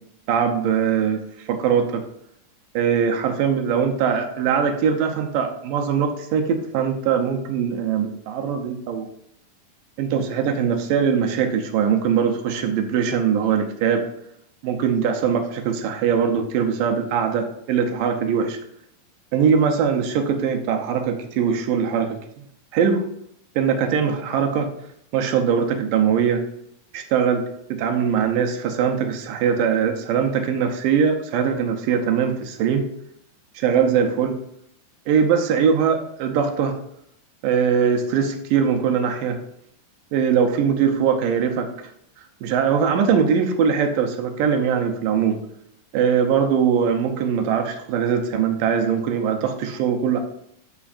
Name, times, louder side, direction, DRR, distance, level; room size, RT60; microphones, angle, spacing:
voice 1, 0.3-2.0 2.8-9.1 10.0-14.1 14.6-18.6 19.3-22.2 22.7-23.1 23.6-24.7 25.1-26.4 26.9-27.5 27.7-32.9 33.6-34.4 35.1-36.8 37.4-39.4 40.1-41.9 42.4-45.4 45.9-50.2, right 7 dB, 75° right, 5 dB, 2.2 m, -21 dB
14.0 x 5.1 x 2.5 m, 0.74 s
omnidirectional pair, 4.4 m